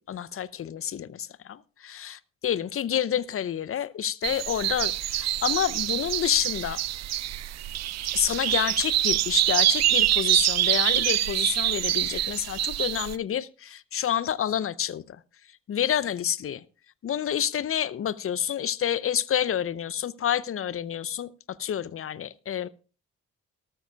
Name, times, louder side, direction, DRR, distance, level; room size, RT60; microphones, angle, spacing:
voice 1, 0.1-6.8 8.1-15.2 15.7-16.6 17.0-21.3 21.6-22.7, left 10 dB, 35° left, 0.6 m, -28 dB
sound 1, 4.2-13.2, right 14 dB, 45° right, 0.5 m, -25 dB
19.0 x 13.0 x 2.3 m
hypercardioid pair, 40°, 38 cm